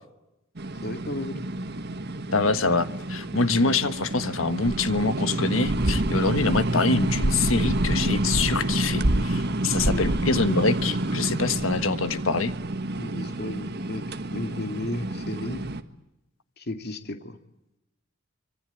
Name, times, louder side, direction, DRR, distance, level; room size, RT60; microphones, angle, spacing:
sound 1, 0.6-15.8, right 1 dB, 50° right, 1.6 m, -28 dB
voice 1, 0.8-1.4 9.8-10.2 13.0-14.0 14.3-15.6 16.6-17.4, left 1 dB, 50° left, 7 dB, 2.3 m, -34 dB
voice 2, 2.3-12.5, left 3 dB, 70° left, 12 dB, 1.5 m, -25 dB
25.5 x 25.0 x 8.5 m, 0.91 s
head